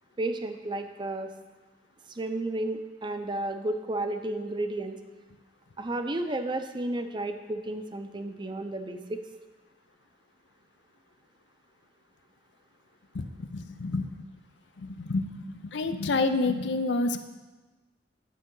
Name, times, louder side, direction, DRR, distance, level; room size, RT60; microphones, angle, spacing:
voice 1, 0.2-1.3 2.1-5.0 5.8-9.2, right 2 dB, 25° right, 7 dB, 0.6 m, -32 dB
voice 2, 13.5-14.0 15.0-15.3 15.7-17.2, left 3 dB, 80° left, 9 dB, 0.6 m, -27 dB
10.5 x 6.5 x 3.8 m, 1.2 s
head